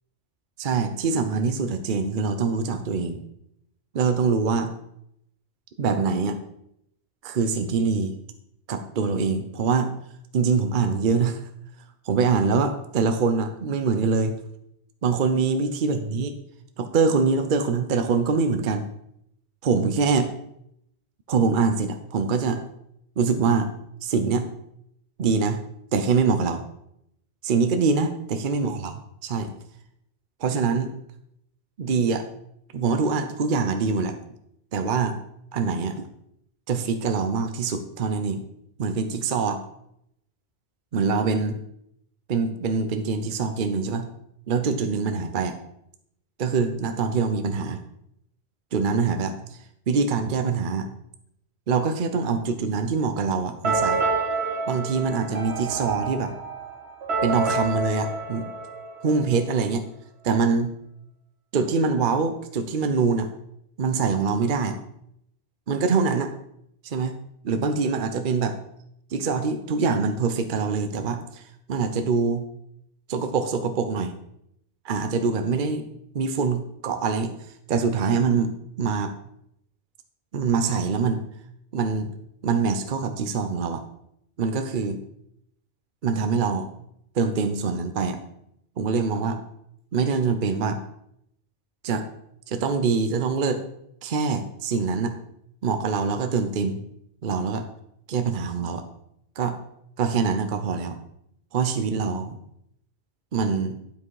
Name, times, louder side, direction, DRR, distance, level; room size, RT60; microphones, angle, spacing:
voice 1, 0.6-3.2 3.9-4.7 5.8-6.4 7.2-8.1 8.7-9.9 10.3-11.4 12.0-14.3 15.0-16.3 16.8-18.9 19.6-20.2 21.3-22.6 23.2-23.7 24.0-24.4 25.2-25.6 25.9-26.6 27.4-28.9 29.2-29.5 30.4-30.9 31.8-32.2 32.7-34.2 34.7-35.2 35.5-36.1 36.7-38.4 38.8-39.6 40.9-41.6 42.3-44.1 44.5-45.5 46.4-47.8 48.7-49.3 49.9-50.9 51.7-54.0 54.7-56.3 57.2-58.5 59.0-59.8 60.2-60.7 61.5-63.3 63.8-64.8 65.7-66.3 66.8-67.1 67.4-68.6 69.1-71.4 71.7-72.4 73.1-74.1 74.8-75.8 76.1-77.3 77.7-79.1 80.3-81.2 81.7-82.1 82.4-83.8 84.4-85.0 86.0-86.7 87.1-88.2 88.8-89.4 89.9-90.8 91.8-92.0 92.5-93.6 94.0-95.1 95.6-96.8 97.2-97.6 98.1-98.8 99.4-99.6 100.0-101.0 101.5-102.3 103.3-103.8, right 5 dB, 55° right, 8 dB, 0.8 m, -24 dB
sound 1, 53.6-59.4, right 4 dB, 80° right, 1.7 m, -28 dB
11.0 x 5.1 x 4.7 m, 0.76 s
omnidirectional pair, 1.1 m